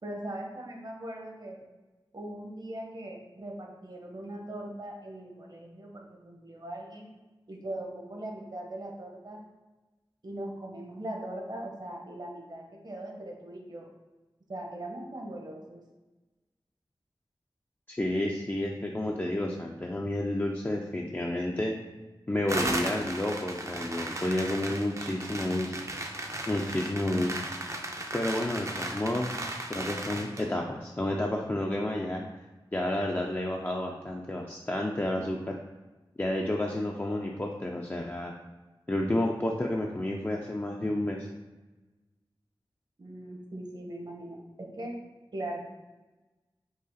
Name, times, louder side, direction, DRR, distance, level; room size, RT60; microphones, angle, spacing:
voice 1, 0.0-1.6 2.1-7.1 7.5-9.4 10.2-13.9 14.5-15.8 43.0-44.9 45.3-45.7, right 1 dB, 50° right, 0 dB, 0.9 m, -40 dB
voice 2, 17.9-21.7 22.3-25.8 26.5-27.4 28.1-29.3 29.7-32.2 32.7-35.6 36.2-38.3 38.9-41.3, left 1 dB, 25° left, -1 dB, 0.4 m, -30 dB
sound 1, 22.5-30.5, right 1 dB, 35° right, 0.5 m, -36 dB
4.9 x 2.4 x 4.0 m, 1.2 s
wide cardioid pair, 65°, 9 cm